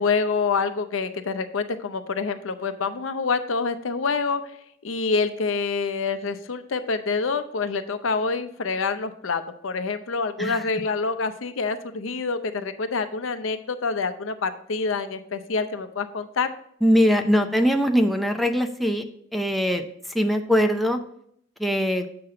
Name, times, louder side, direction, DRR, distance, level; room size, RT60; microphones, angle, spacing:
voice 1, 0.0-4.4 4.8-16.5, left 4 dB, 80° left, 10 dB, 0.6 m, -26 dB
voice 2, 16.8-19.0 19.3-21.0 21.6-22.1, equal, ahead, 4 dB, 0.5 m, -22 dB
7.7 x 5.9 x 3.7 m, 0.69 s
head